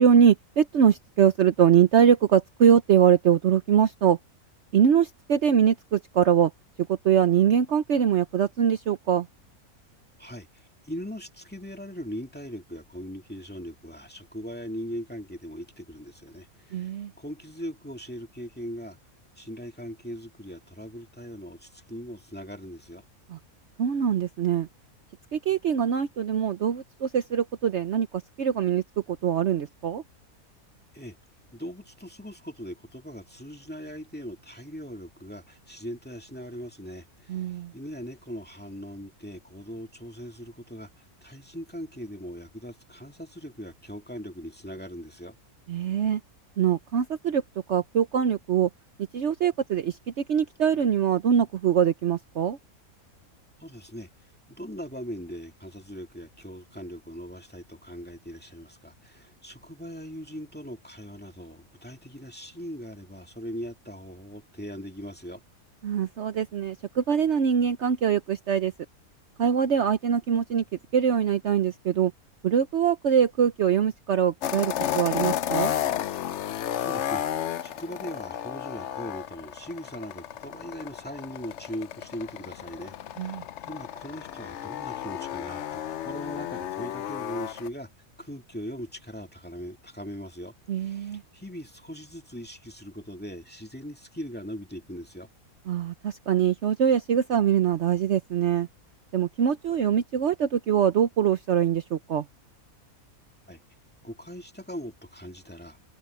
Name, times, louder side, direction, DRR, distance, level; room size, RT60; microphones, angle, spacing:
voice 1, 0.0-4.2 4.7-6.5 6.9-9.3 16.7-17.1 23.3-23.4 23.8-24.7 25.3-28.1 28.4-28.8 29.1-30.0 37.3-37.7 45.7-46.2 46.6-47.4 47.7-48.7 49.1-50.0 50.3-52.6 65.8-68.7 69.4-70.6 70.9-72.1 72.4-75.7 83.2-83.4 90.7-91.2 95.7-98.7 99.1-102.2, right 8 dB, 55° right, 1.0 m, -23 dB
voice 2, 10.2-16.9 17.2-19.0 19.4-23.0 30.9-31.2 31.5-45.4 53.6-54.1 54.6-65.4 76.8-77.2 77.6-87.9 88.2-95.3 103.5-103.6 104.0-105.8, equal, 5° left, 2.3 m, -40 dB
sound 1, 74.4-87.7, left 10 dB, 65° left, 0.8 m, -32 dB
omnidirectional pair, 1.5 m